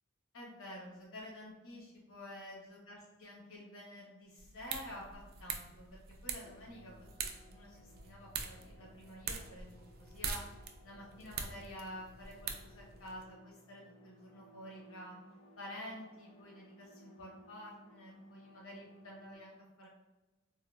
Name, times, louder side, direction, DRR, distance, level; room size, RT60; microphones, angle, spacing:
voice 1, 0.3-10.4 10.8-15.2 15.6-19.9, left 1 dB, 75° left, -2 dB, 0.9 m, -50 dB
sound 1, 4.4-13.2, right 6 dB, 50° right, 0.3 m, -44 dB
sound 2, 6.4-19.4, left 1 dB, 25° left, 0.4 m, -60 dB
3.6 x 2.2 x 2.2 m, 1.1 s
head